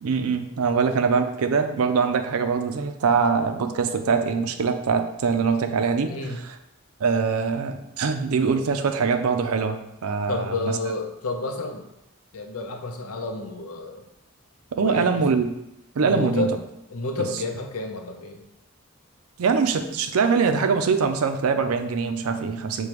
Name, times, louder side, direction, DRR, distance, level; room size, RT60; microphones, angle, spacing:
voice 1, 0.0-6.1 7.0-10.8 14.7-15.5 16.0-16.6 19.4-22.9, right 5 dB, 80° right, 7 dB, 0.4 m, -23 dB
voice 2, 6.1-6.4 10.3-11.8 12.3-14.0 14.8-15.2 16.0-16.5 16.9-18.4, left 2 dB, 80° left, 4 dB, 0.6 m, -30 dB
6.7 x 2.3 x 3.0 m, 0.85 s
head